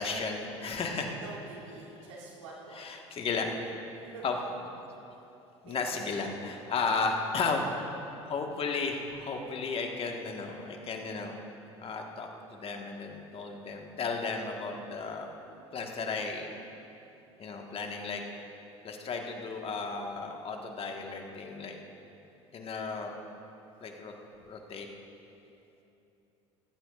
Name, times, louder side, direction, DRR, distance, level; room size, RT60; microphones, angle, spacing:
voice 1, 0.0-1.2 2.7-3.5 4.2-4.3 5.6-7.7 8.2-11.3 11.8-15.3 15.7-16.5 17.4-18.2 18.8-21.8 22.5-23.1 23.8-24.1 24.5-24.9, left 4 dB, 40° left, 2 dB, 1.5 m, -34 dB
voice 2, 1.1-2.9 4.0-4.2 5.6-6.5, right 3 dB, 80° right, -5 dB, 2.9 m, -47 dB
16.5 x 15.5 x 2.5 m, 2.9 s
hypercardioid pair, 70°, 15 cm